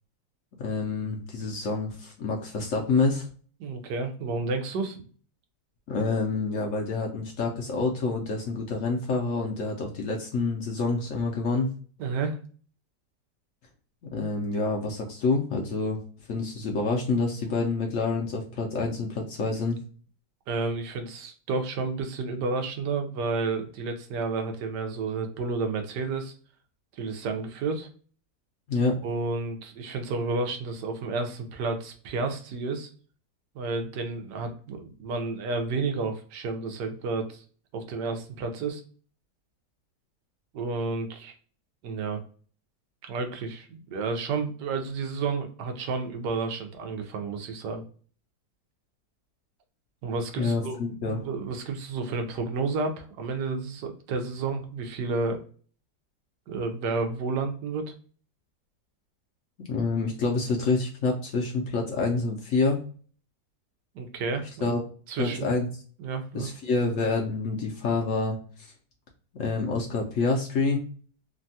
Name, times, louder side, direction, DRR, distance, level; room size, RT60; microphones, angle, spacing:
voice 1, 0.6-3.3 5.9-11.7 14.0-16.0 16.3-19.8 28.7-29.0 50.4-51.2 59.7-62.8 64.6-64.8 65.2-65.7 66.3-68.7 69.4-70.8, left 3 dB, 65° left, 0 dB, 0.9 m, -27 dB
voice 2, 3.6-5.0 12.0-12.4 20.5-26.3 27.0-27.9 29.0-32.9 33.5-37.4 37.7-38.8 40.5-41.3 41.8-42.2 43.0-47.8 50.0-55.4 56.5-57.9 63.9-64.7 65.1-65.6 66.0-66.5, right 4 dB, 80° right, 5 dB, 1.3 m, -31 dB
3.3 x 2.2 x 2.6 m, 0.42 s
omnidirectional pair, 1.8 m